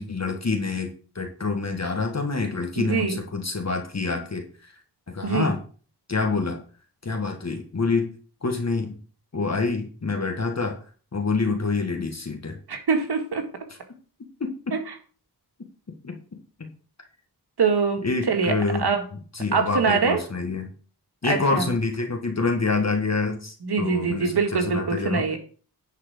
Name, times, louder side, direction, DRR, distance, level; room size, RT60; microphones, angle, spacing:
voice 1, 0.0-4.5 5.1-5.6 6.1-6.6 7.0-8.1 8.4-9.0 9.3-10.8 11.1-12.6 14.4-14.8 16.0-16.2 16.6-16.7 18.0-18.9 19.3-20.7 21.2-25.3, left 4 dB, 40° left, 3 dB, 1.7 m, -27 dB
voice 2, 2.8-3.2 5.2-5.5 12.7-13.5 14.7-14.8 17.6-18.0 18.3-18.5 18.8-19.0 19.5-20.2 21.2-21.7 23.6-25.4, right 5 dB, 70° right, 4 dB, 2.0 m, -23 dB
10.5 x 4.8 x 6.2 m, 0.40 s
wide cardioid pair, 90°, 40 cm